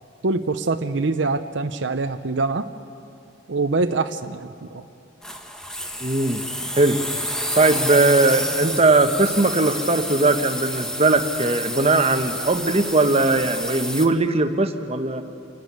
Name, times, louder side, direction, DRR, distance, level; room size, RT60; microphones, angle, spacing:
voice 1, 0.2-2.7 3.5-4.8, right 3 dB, 70° right, 8 dB, 0.8 m, -24 dB
sound 1, 5.2-14.1, equal, 5° left, 1.2 m, -29 dB
voice 2, 6.0-6.4 6.7-7.0 7.5-15.2, right 2 dB, 35° right, 7 dB, 1.2 m, -19 dB
29.0 x 11.5 x 9.5 m, 2.4 s
head